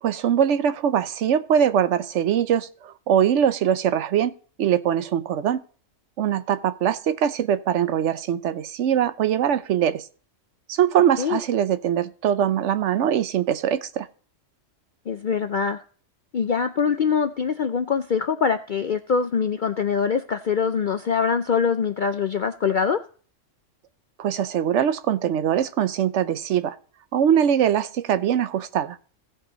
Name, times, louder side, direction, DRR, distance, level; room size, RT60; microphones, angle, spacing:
voice 1, 0.0-4.3 4.6-5.6 6.2-10.0 10.7-14.1 24.2-26.8 27.1-29.0, right 9 dB, 65° right, 1.0 m, -22 dB
voice 2, 15.1-15.8 16.3-23.0, left 6 dB, 55° left, 0.5 m, -23 dB
16.0 x 5.5 x 3.9 m
omnidirectional pair, 1.4 m